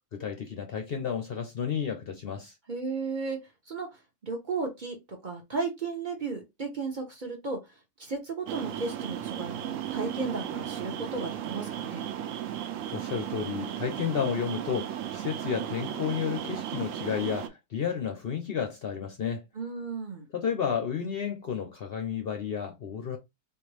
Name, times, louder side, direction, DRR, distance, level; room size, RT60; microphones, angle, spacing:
voice 1, 0.1-2.5 12.9-19.4 20.3-23.2, left 7 dB, 60° left, 0.6 m, -32 dB
voice 2, 2.7-3.4 3.7-5.0 5.2-7.7 8.0-12.1 19.5-20.3, right 4 dB, 40° right, 0.8 m, -34 dB
sound 1, 8.5-17.5, right 10 dB, 70° right, 0.9 m, -35 dB
3.7 x 2.5 x 3.2 m
omnidirectional pair, 1.6 m